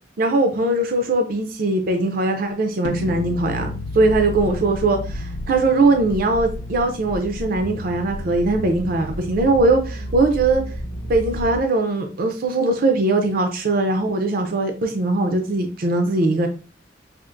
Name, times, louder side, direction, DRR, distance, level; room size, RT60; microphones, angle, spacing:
voice 1, 0.2-3.7 3.9-10.6 11.1-16.5, right 2 dB, 55° right, 0.5 m, -20 dB
sound 1, 2.8-8.8, left 3 dB, 65° left, 0.3 m, -35 dB
sound 2, 3.6-11.6, equal, 85° left, 0.8 m, -32 dB
4.9 x 2.4 x 2.5 m
head